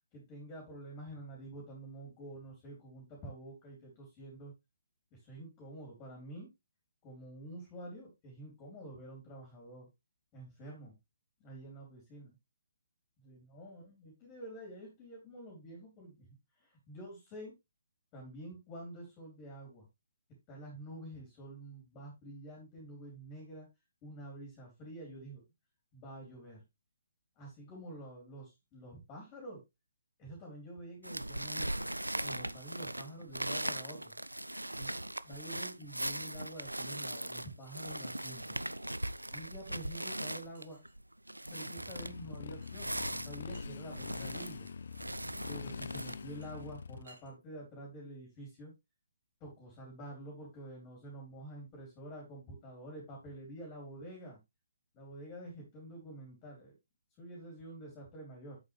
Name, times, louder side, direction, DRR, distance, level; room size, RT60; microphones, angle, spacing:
voice 1, 0.1-4.5 5.1-6.5 7.0-9.9 10.3-11.0 11.4-12.3 13.2-16.3 16.6-17.5 18.1-19.9 20.5-23.7 24.0-25.4 25.9-26.6 27.4-29.6 30.2-31.8 32.2-34.1 34.8-34.9 35.2-38.6 39.3-40.8 41.5-44.7 45.5-48.7 49.4-54.4 54.9-56.7 57.2-58.6, right 1 dB, 20° left, -1 dB, 3.6 m, -48 dB
sound 1, 31.0-46.1, right 1 dB, 85° right, 0.5 m, -39 dB
sound 2, 39.2-39.9 40.5-41.1 42.6-42.8 43.1-44.1 46.1-47.3, right 2 dB, 60° right, 4.4 m, -62 dB
Motorcycle, 41.9-47.0, left 5 dB, 55° left, 0.6 m, -44 dB
8.2 x 7.8 x 3.2 m, 0.22 s
figure-of-eight pair, 135°, 0 cm